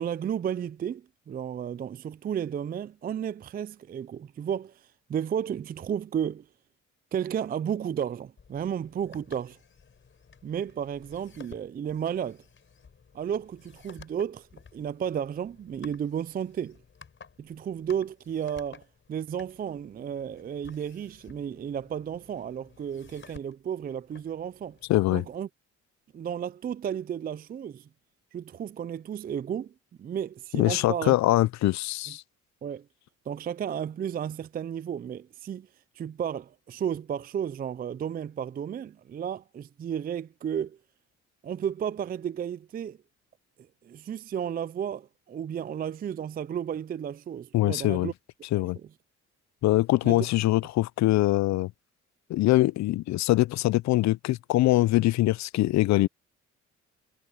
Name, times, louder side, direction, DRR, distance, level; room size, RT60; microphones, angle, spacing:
voice 1, 0.0-6.5 7.1-9.6 10.4-12.4 13.1-14.5 14.7-16.8 17.4-24.8 25.1-25.5 26.1-27.9 28.3-29.7 30.0-31.1 32.6-32.8 33.3-35.7 36.0-40.8 41.4-43.0 43.6-48.1 48.5-48.7 50.0-50.3, right 8 dB, 30° right, 0.4 m, -33 dB
sound 1, 8.4-25.4, left 6 dB, 40° left, 4.8 m, -54 dB
voice 2, 24.9-25.2 30.5-32.2 47.5-48.1 48.5-48.8 49.6-51.7 52.3-56.1, left 16 dB, 65° left, 0.4 m, -23 dB
cardioid pair, 90°, 30 cm